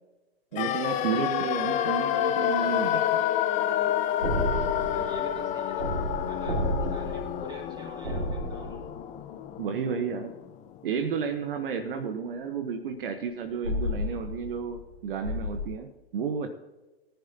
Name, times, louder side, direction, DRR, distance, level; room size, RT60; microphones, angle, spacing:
voice 1, 0.5-3.2 9.6-10.3 10.8-16.5, right 6 dB, 60° right, 6 dB, 1.2 m, -32 dB
sound 1, 0.6-10.5 10.8-10.9, left 11 dB, 25° left, 0.7 m, -29 dB
sound 2, 4.2-9.2 13.6-14.9 15.2-15.7, equal, 75° right, 3.4 m, -32 dB
voice 2, 4.7-5.9 6.2-8.9, right 2 dB, 15° right, 0 dB, 3.4 m, -46 dB
18.5 x 10.5 x 2.8 m, 1.1 s
figure-of-eight pair, 110°, 32 cm